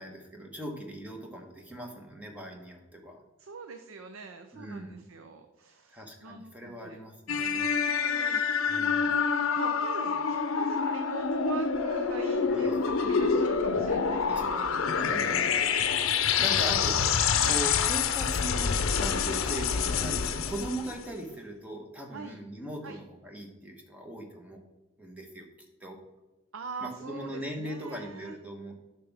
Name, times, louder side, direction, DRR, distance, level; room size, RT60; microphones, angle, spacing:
voice 1, 0.0-3.2 4.5-5.0 5.9-7.7 8.7-9.1 12.5-12.8 14.2-14.6 14.9-15.6 16.4-17.2 17.4-24.6 25.0-25.5 25.8-26.0 26.8-28.7, right 1 dB, 5° right, 2 dB, 1.2 m, -40 dB
voice 2, 3.4-7.0 7.5-9.2 9.5-14.7 17.4-17.6 22.1-22.4 22.8-23.0 26.5-28.4, right 4 dB, 85° right, 7 dB, 0.6 m, -43 dB
sound 1, 7.3-21.0, left 6 dB, 90° left, 0.6 m, -27 dB
9.4 x 6.0 x 3.5 m, 1.1 s
head